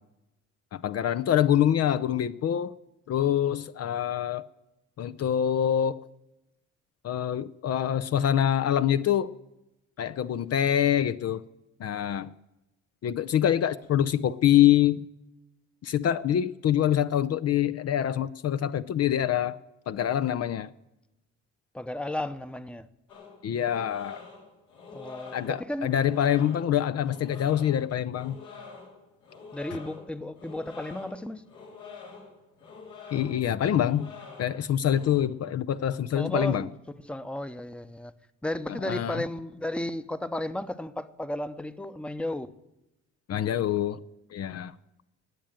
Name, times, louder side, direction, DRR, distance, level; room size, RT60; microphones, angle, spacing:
voice 1, 0.7-2.7 3.1-4.5 5.0-6.0 7.0-9.3 10.0-11.4 11.8-12.3 13.0-15.0 15.8-19.6 19.9-20.7 23.4-24.2 25.3-28.4 29.7-29.8 33.1-34.1 34.4-36.6 38.8-39.2 43.3-44.0 44.3-44.7, left 10 dB, 55° left, 0.6 m, -25 dB
voice 2, 21.7-22.9 24.9-25.9 29.5-31.4 36.1-38.1 38.4-42.5, left 1 dB, 5° left, 0.8 m, -34 dB
sound 1, 23.1-35.2, left 5 dB, 85° left, 5.2 m, -46 dB
19.5 x 7.6 x 8.9 m
cardioid pair, 90°, 30 cm